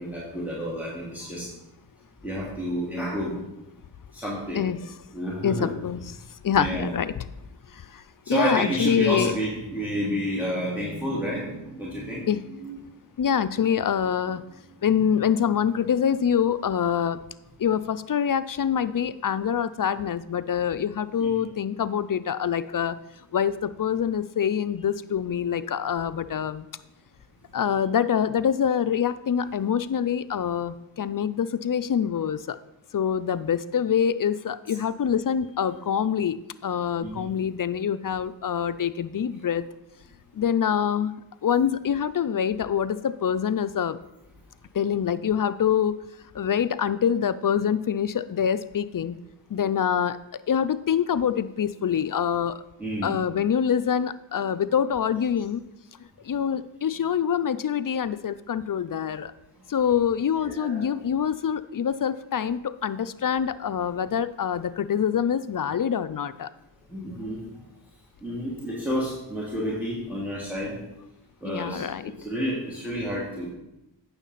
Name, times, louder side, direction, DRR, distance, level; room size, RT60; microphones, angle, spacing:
voice 1, 0.0-1.5 2.2-3.4 4.1-4.7 5.1-5.7 6.6-6.9 8.2-12.8 14.9-15.0 21.2-21.3 37.0-37.3 52.8-53.1 60.4-60.8 66.9-67.4 68.2-70.8 71.4-71.9 72.2-73.5, equal, 5° right, -6 dB, 2.6 m, -30 dB
voice 2, 5.4-6.0 6.4-7.1 8.3-9.3 12.3-12.4 13.2-14.4 14.8-17.2 17.6-23.0 23.3-26.7 27.5-32.6 32.9-36.4 36.6-39.7 40.4-41.1 41.4-44.0 44.7-46.0 46.4-49.2 49.5-50.2 50.5-52.6 53.0-55.6 56.3-59.3 59.7-66.5 71.4-72.1, left 8 dB, 45° left, 14 dB, 0.5 m, -25 dB
9.0 x 6.5 x 4.0 m, 0.92 s
cardioid pair, 45°, 48 cm